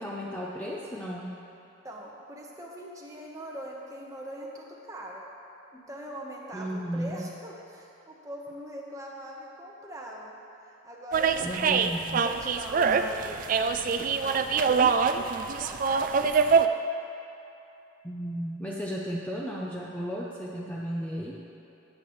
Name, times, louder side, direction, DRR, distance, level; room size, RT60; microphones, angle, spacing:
voice 1, 0.0-1.4 6.5-7.3 11.4-12.2 18.0-21.4, equal, 10° left, -4 dB, 0.6 m, -34 dB
voice 2, 1.8-5.2 5.7-10.3 10.7-14.9 15.5-16.2, right 1 dB, 15° right, -2 dB, 1.2 m, -42 dB
sound 1, 11.1-16.7, right 5 dB, 45° right, 0.3 m, -24 dB
15.5 x 8.7 x 3.2 m, 2.9 s
head